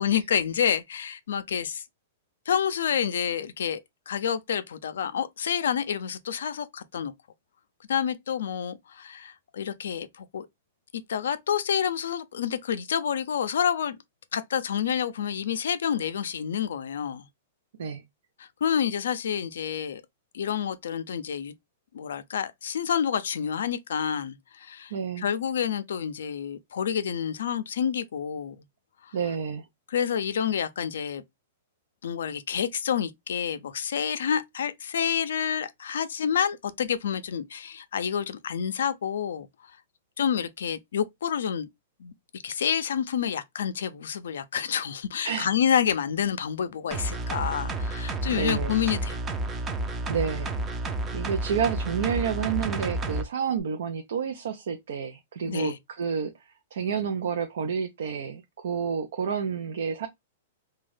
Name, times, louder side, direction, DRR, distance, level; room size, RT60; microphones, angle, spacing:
voice 1, 0.0-1.8 2.5-3.8 4.1-7.1 7.9-10.5 11.1-14.0 14.3-17.3 18.4-20.0 20.3-21.5 21.9-28.6 29.0-29.1 29.9-31.2 32.0-39.5 40.2-41.7 42.0-49.2 55.5-55.8, left 8 dB, 80° left, 0.4 m, -28 dB
voice 2, 24.9-25.2 29.1-29.6 45.2-45.5 48.3-48.8 50.1-50.5 51.1-56.3 56.7-60.1, right 6 dB, 75° right, 0.5 m, -29 dB
sound 1, 46.9-53.2 53.6-53.7, right 2 dB, 20° right, 0.5 m, -31 dB
2.6 x 2.2 x 3.2 m
hypercardioid pair, 140°, 0 cm